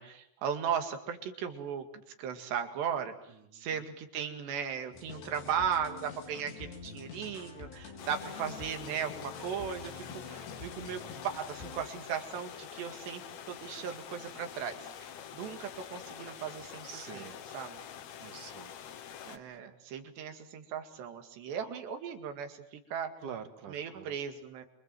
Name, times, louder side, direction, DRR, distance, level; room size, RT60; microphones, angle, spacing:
voice 1, 0.0-3.1 3.5-17.3 17.5-17.8 19.2-23.1 23.7-24.6, right 8 dB, 90° right, 6 dB, 4.4 m, -37 dB
voice 2, 3.3-3.8 16.8-17.4 18.2-18.7 19.4-19.6 23.2-24.2, right 7 dB, 55° right, 8 dB, 3.0 m, -46 dB
sound 1, 4.9-11.8, left 5 dB, 90° left, 6.1 m, -47 dB
sound 2, 8.0-19.4, left 9 dB, 65° left, 1.8 m, -46 dB
27.5 x 24.0 x 7.7 m, 0.74 s
omnidirectional pair, 4.8 m